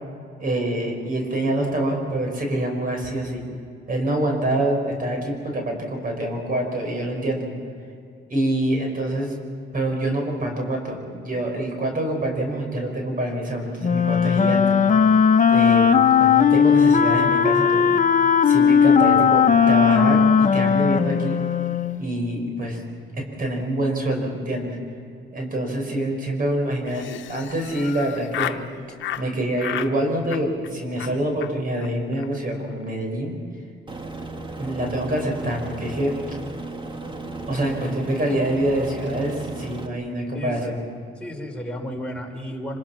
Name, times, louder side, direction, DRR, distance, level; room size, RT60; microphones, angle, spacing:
voice 1, 0.4-3.4 3.9-7.5 8.3-9.3 9.7-15.1 15.5-17.9 18.4-20.2 20.5-21.4 22.0-22.8 23.1-24.8 25.3-28.6 29.2-33.4 34.6-36.1 37.5-40.8, right 1 dB, 45° right, 2 dB, 5.8 m, -26 dB
Wind instrument woodwind instrument, 13.8-22.0, left 7 dB, 40° left, 1.1 m, -17 dB
Laughter, 26.8-28.6 29.0-29.3 29.6-29.9 30.2-30.7 31.0-31.1 31.4-31.5 31.8-31.9 32.1-32.3 32.5-32.9, left 12 dB, 70° left, 1.0 m, -32 dB
Aircraft, 33.9-39.9, right 2 dB, 25° right, 2.0 m, -35 dB
voice 2, 40.3-40.7 41.2-42.8, equal, 5° left, -1 dB, 4.9 m, -33 dB
26.0 x 26.0 x 6.1 m, 2.4 s
cardioid pair, 90°, 20 cm